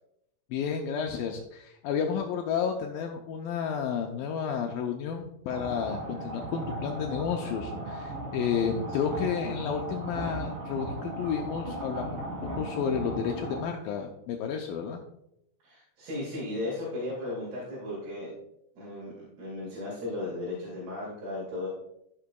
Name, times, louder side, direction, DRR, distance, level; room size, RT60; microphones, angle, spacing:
voice 1, 0.5-15.0, left 7 dB, 90° left, 2 dB, 2.0 m, -31 dB
sound 1, 5.5-13.6, right 1 dB, 40° right, 2.7 m, -36 dB
voice 2, 15.6-18.3 18.8-21.7, left 2 dB, 70° right, -7 dB, 4.4 m, -35 dB
14.5 x 6.0 x 2.3 m, 0.79 s
omnidirectional pair, 4.8 m